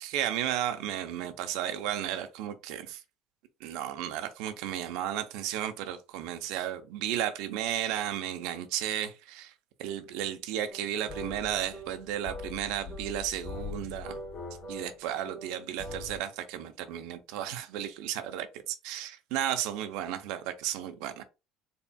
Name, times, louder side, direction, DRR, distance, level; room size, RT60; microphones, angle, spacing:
voice 1, 0.0-3.0 3.6-9.5 9.8-14.2 14.7-21.2, right 11 dB, 75° right, 0.6 m, -34 dB
sound 1, 10.7-16.2, left 2 dB, 60° left, 2.2 m, -42 dB
4.2 x 3.4 x 2.2 m
supercardioid pair, 85°, 0 cm